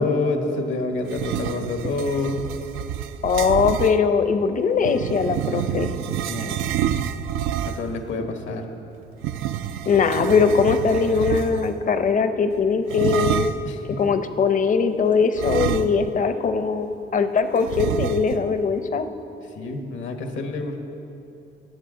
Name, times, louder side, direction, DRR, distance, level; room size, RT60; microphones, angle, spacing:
voice 1, 0.0-2.4 6.3-6.8 7.6-8.6 13.6-14.0 19.6-20.8, left 2 dB, 75° left, 5 dB, 1.3 m, -27 dB
sound 1, 1.1-4.0 4.8-8.0 9.2-11.8 12.9-13.7 15.4-16.3 16.6-16.7 17.7-18.5, right 10 dB, 85° right, 0.4 m, -28 dB
voice 2, 3.2-5.9 9.9-13.4 14.0-19.1, left 5 dB, 40° left, 9 dB, 0.7 m, -21 dB
18.0 x 7.2 x 3.8 m, 2.7 s
cardioid pair, 90°, 20 cm